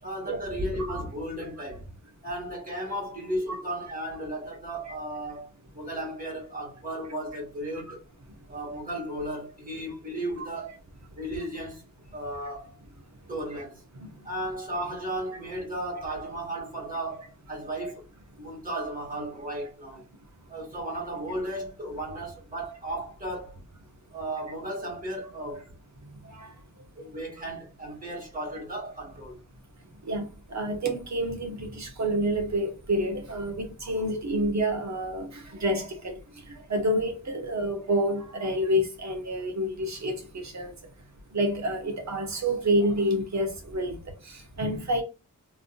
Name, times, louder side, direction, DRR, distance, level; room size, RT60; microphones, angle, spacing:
voice 1, 0.0-2.0 2.2-8.0 8.5-10.8 11.1-11.9 12.1-12.8 13.3-13.8 14.2-18.1 18.4-20.0 20.5-23.6 24.1-25.8 27.0-29.4, right 1 dB, 25° right, 2.0 m, -35 dB
voice 2, 30.5-36.2 36.6-40.7 41.3-44.0 44.6-45.0, equal, 55° right, 1.0 m, -28 dB
3.4 x 2.7 x 2.5 m
wide cardioid pair, 120°, 33 cm